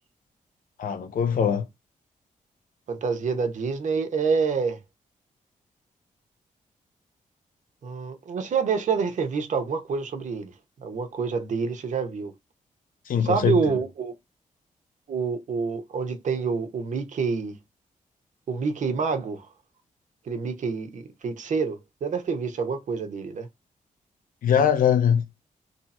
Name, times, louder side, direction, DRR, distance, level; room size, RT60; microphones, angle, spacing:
voice 1, 0.8-1.7 13.1-13.8 24.4-25.2, left 8 dB, 80° left, 0.9 m, -22 dB
voice 2, 2.9-4.8 7.8-10.5 10.8-12.3 13.2-14.1 15.1-17.6 18.5-19.5 20.3-23.5, right 5 dB, 60° right, 0.9 m, -27 dB
3.1 x 2.8 x 4.1 m
wide cardioid pair, 175°, 14 cm